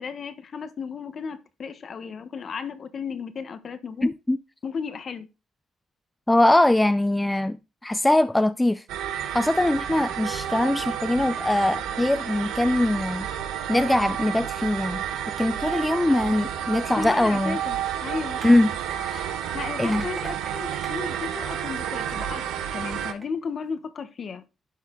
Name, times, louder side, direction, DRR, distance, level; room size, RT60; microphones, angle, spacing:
voice 1, 0.0-4.1 4.6-5.3 16.1-16.2 17.0-18.4 19.5-24.4, left 5 dB, 50° left, 1.1 m, -34 dB
voice 2, 4.0-4.4 6.3-7.6 7.8-8.8 9.3-13.3 13.7-15.0 15.4-17.6 18.4-18.7 18.9-19.4 19.8-20.0, left 1 dB, 10° left, 0.5 m, -22 dB
sound 1, 8.9-23.1, right 9 dB, 90° right, 1.1 m, -31 dB
sound 2, 17.5-22.5 23.0-23.3, right 3 dB, 30° right, 1.8 m, -44 dB
11.0 x 4.3 x 3.8 m
cardioid pair, 90°, 0 cm